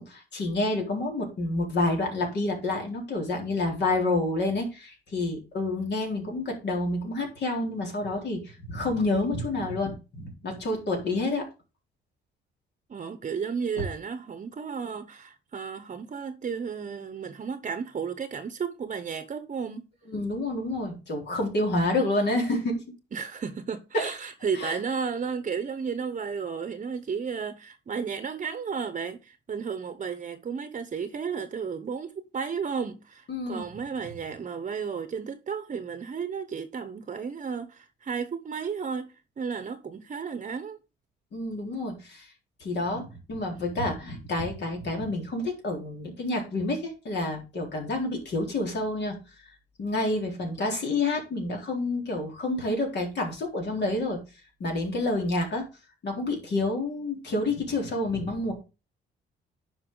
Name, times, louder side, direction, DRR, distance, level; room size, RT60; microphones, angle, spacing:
voice 1, 0.0-11.5 20.1-22.8 24.6-24.8 33.3-33.7 41.3-42.3 42.6-49.2 49.8-54.2 54.6-55.7 56.0-58.5, left 2 dB, 60° left, 3.8 m, -29 dB
voice 2, 12.9-19.9 23.1-40.8, right 6 dB, 40° right, 0.9 m, -33 dB
9.9 x 5.5 x 3.8 m
cardioid pair, 90°, 20 cm